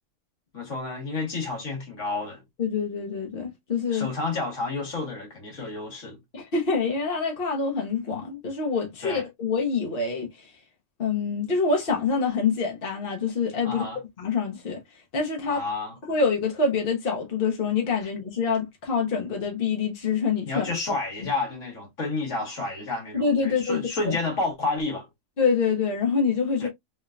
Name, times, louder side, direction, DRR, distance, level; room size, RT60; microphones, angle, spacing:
voice 1, 0.5-2.4 3.9-6.2 9.0-9.2 13.6-14.0 15.5-16.0 20.4-25.1 26.6-26.7, left 3 dB, 70° left, 1.8 m, -30 dB
voice 2, 2.6-4.1 6.3-10.5 11.0-13.8 14.2-14.8 15.1-15.6 16.1-20.6 23.1-24.2 25.4-26.7, left 5 dB, 45° left, 1.2 m, -26 dB
3.6 x 3.3 x 2.4 m
omnidirectional pair, 1.4 m